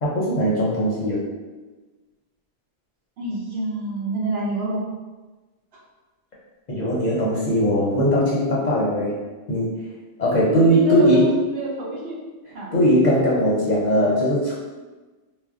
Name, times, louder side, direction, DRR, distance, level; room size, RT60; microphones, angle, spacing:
voice 1, 0.0-1.2 6.7-9.2 9.5-9.7 10.2-11.4 12.7-14.6, equal, 50° left, -5 dB, 0.6 m, -19 dB
voice 2, 3.2-4.8 10.5-12.2 12.5-12.7, right 2 dB, 70° right, -4 dB, 0.9 m, -28 dB
2.4 x 2.0 x 3.5 m, 1.2 s
omnidirectional pair, 1.1 m